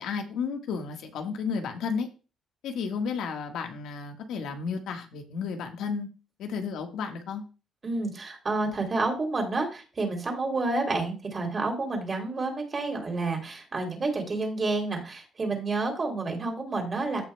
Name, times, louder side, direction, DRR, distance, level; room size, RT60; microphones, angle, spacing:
voice 1, 0.0-2.1 2.6-6.1 6.4-7.4, left 5 dB, 80° left, 4 dB, 1.5 m, -32 dB
voice 2, 7.8-17.2, right 3 dB, 30° right, 2 dB, 3.2 m, -29 dB
15.0 x 6.2 x 2.3 m, 0.33 s
cardioid pair, 120°, 0 cm